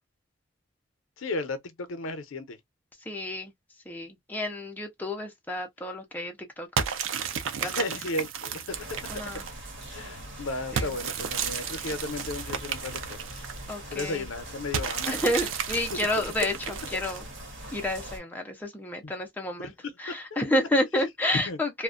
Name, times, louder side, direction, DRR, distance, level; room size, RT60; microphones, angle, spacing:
voice 1, 1.2-1.6 1.9-2.6 7.6-9.0 9.9-13.2 13.9-15.1 15.9-16.0 20.3-20.4 21.3-21.6, left 2 dB, 90° left, 0.6 m, -34 dB
voice 2, 3.1-3.5 3.9-6.7 7.6-7.9 9.1-9.5 10.7-10.9 13.7-14.3 15.1-17.2 17.7-19.7 20.0-21.8, left 1 dB, 10° left, 0.6 m, -30 dB
sound 1, 6.8-9.7 10.8-13.7 14.7-17.4, right 7 dB, 85° right, 0.5 m, -33 dB
sound 2, 8.7-18.2, right 1 dB, 70° right, 1.1 m, -42 dB
2.4 x 2.1 x 2.4 m
head